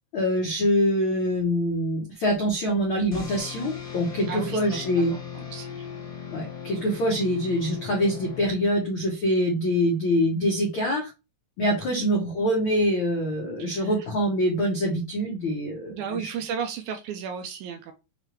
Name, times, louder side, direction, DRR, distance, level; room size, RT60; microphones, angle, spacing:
voice 1, 0.1-5.1 6.3-11.1 11.6-16.3, equal, 80° left, -1 dB, 1.1 m, -25 dB
sound 1, 3.1-9.0, left 8 dB, 10° left, 1.1 m, -38 dB
voice 2, 4.3-5.1 5.3-5.9 11.9-12.1 13.6-13.9 15.9-17.9, right 7 dB, 80° right, 5 dB, 1.8 m, -34 dB
6.4 x 2.4 x 3.1 m, 0.27 s
omnidirectional pair, 3.9 m